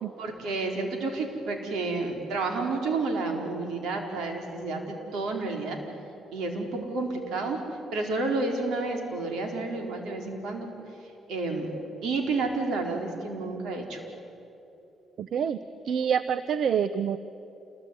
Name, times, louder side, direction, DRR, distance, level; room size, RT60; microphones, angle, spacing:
voice 1, 0.2-5.8 6.3-7.6 7.9-10.7 11.0-11.7 12.0-14.0, right 3 dB, 80° right, 3 dB, 4.4 m, -30 dB
voice 2, 15.2-15.6 15.8-17.2, right 7 dB, 65° right, 13 dB, 0.7 m, -26 dB
27.5 x 21.0 x 9.6 m, 2.8 s
cardioid pair, 90°, 0 cm